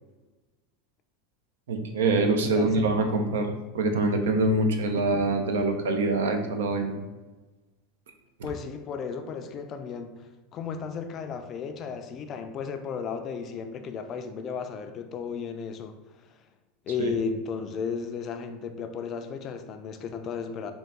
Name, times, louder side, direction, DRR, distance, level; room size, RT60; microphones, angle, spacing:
voice 1, 1.7-3.5 3.7-7.0, right 2 dB, 90° right, 5 dB, 0.5 m, -24 dB
voice 2, 2.4-2.8 5.0-5.1 8.4-10.1 10.5-16.0 16.2-16.3 16.9-20.7, left 5 dB, 40° left, 8 dB, 0.4 m, -34 dB
3.8 x 2.3 x 3.5 m, 1.2 s
supercardioid pair, 125°, 0 cm